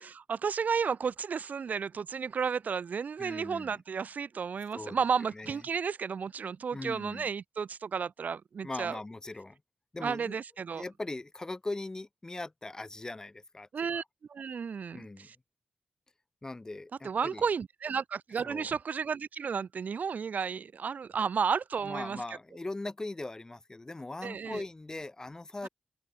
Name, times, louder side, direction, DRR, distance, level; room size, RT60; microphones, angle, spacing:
voice 1, 0.0-9.0 10.0-10.8 13.7-14.0 14.3-15.3 17.0-22.2 24.2-24.6, right 6 dB, 65° right, 1.6 m, -33 dB
voice 2, 3.2-3.8 4.7-5.0 5.3-5.6 6.7-7.3 8.6-9.6 9.9-10.4 10.7-14.0 14.9-15.3 16.4-17.4 18.4-18.7 21.8-25.7, left 2 dB, 20° left, 4.2 m, -40 dB
wide cardioid pair, 125°, 3 cm